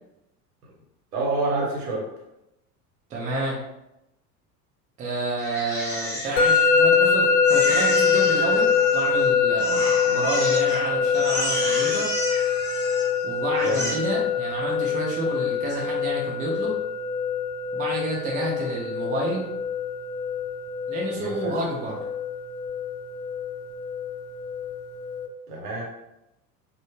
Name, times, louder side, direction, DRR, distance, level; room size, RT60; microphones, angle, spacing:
voice 1, 1.1-2.1 13.6-13.9 21.2-21.5 25.5-25.9, right 2 dB, 65° right, -2 dB, 0.9 m, -27 dB
voice 2, 3.1-3.6 5.0-12.1 13.2-16.7 17.7-19.5 20.9-21.9, right 1 dB, 15° right, -4 dB, 0.5 m, -29 dB
Crying sobbing, 5.4-7.1 7.4-9.2 9.6-10.8 11.1-13.2 13.6-13.9, equal, 5° left, 0.8 m, -32 dB
Musical instrument, 6.4-25.3, left 5 dB, 45° left, 0.5 m, -24 dB
2.0 x 2.0 x 3.1 m, 0.89 s
figure-of-eight pair, 80°, 48 cm